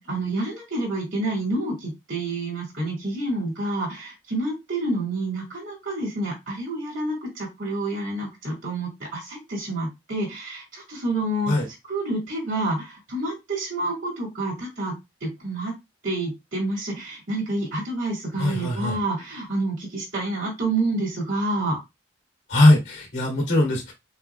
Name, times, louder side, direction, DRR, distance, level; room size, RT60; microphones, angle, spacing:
voice 1, 0.0-11.6 11.9-14.9 15.2-15.7 16.0-21.8, right 2 dB, 90° right, -5 dB, 2.4 m, -28 dB
voice 2, 18.4-19.0 22.5-23.9, left 1 dB, 65° left, -3 dB, 2.4 m, -20 dB
6.0 x 2.0 x 2.4 m, 0.21 s
head